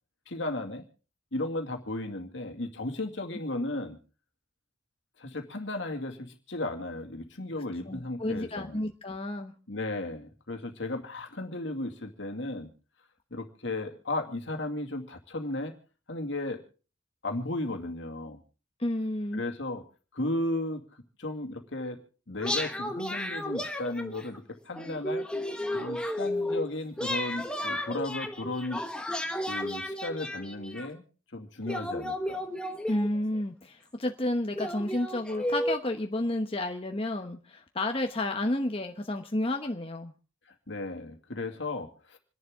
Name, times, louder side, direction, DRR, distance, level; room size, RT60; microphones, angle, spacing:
voice 1, 0.3-0.8 1.3-4.0 5.2-8.9 9.7-12.7 13.3-15.8 16.1-16.6 17.2-18.4 19.3-19.8 20.1-20.8 21.2-22.0 22.3-25.2 25.7-28.8 29.5-31.0 31.3-32.5 40.5-42.2, left 2 dB, 70° left, 4 dB, 2.3 m, -35 dB
voice 2, 7.9-9.5 18.8-19.4 32.9-40.1, left 1 dB, 30° left, 4 dB, 1.0 m, -31 dB
sound 1, 22.4-24.4 24.7-26.7 27.0-30.9 31.7-33.4 34.1-34.2 34.6-35.8, left 1 dB, 5° left, 1.4 m, -33 dB
27.5 x 11.0 x 3.7 m, 0.38 s
head